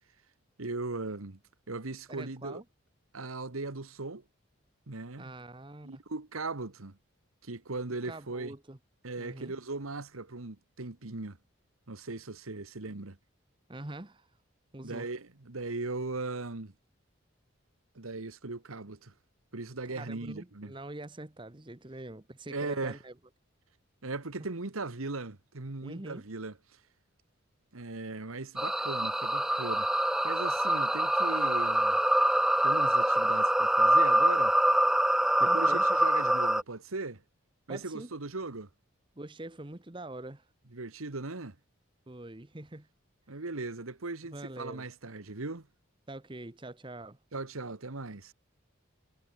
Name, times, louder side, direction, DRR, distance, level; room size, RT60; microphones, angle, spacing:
voice 1, 0.6-1.4 1.7-2.6 3.1-4.2 4.9-5.3 5.8-7.0 7.4-8.5 9.0-11.4 11.9-13.2 14.8-16.7 17.9-19.1 19.5-20.7 22.5-23.0 24.0-26.5 27.7-29.9 30.2-32.0 32.6-34.5 35.4-37.2 37.7-38.7 40.7-41.5 43.3-45.7 47.3-48.3, right 3 dB, 90° right, 1.6 m, -38 dB
voice 2, 2.1-2.6 5.2-6.0 8.0-8.8 9.2-9.5 13.7-14.3 14.7-15.1 19.9-23.1 25.8-26.2 35.4-35.9 37.7-38.1 39.2-40.5 42.1-42.9 44.3-44.9 46.1-47.2, right 2 dB, 25° right, 1.0 m, -44 dB
sound 1, 28.6-36.6, right 1 dB, ahead, 0.3 m, -25 dB
head